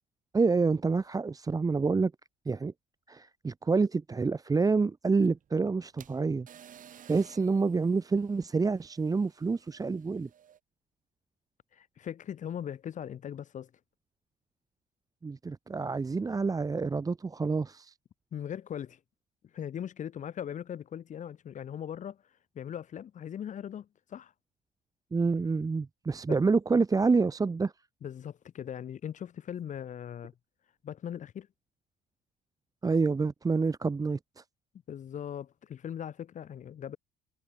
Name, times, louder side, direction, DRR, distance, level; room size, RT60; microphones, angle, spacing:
voice 1, 0.3-2.1 2.4-2.7 3.1-6.5 7.1-10.3 15.2-17.9 25.1-27.7 32.8-34.4, right 4 dB, 20° right, 1.2 m, -27 dB
sound 1, 5.1-10.6, right 9 dB, 50° right, 4.1 m, -56 dB
voice 2, 11.7-13.7 18.3-19.0 19.5-22.2 22.5-24.3 26.3-26.4 28.0-30.3 30.8-31.5 34.9-37.0, left 9 dB, 45° left, 1.4 m, -39 dB
cardioid pair, 110°, 17 cm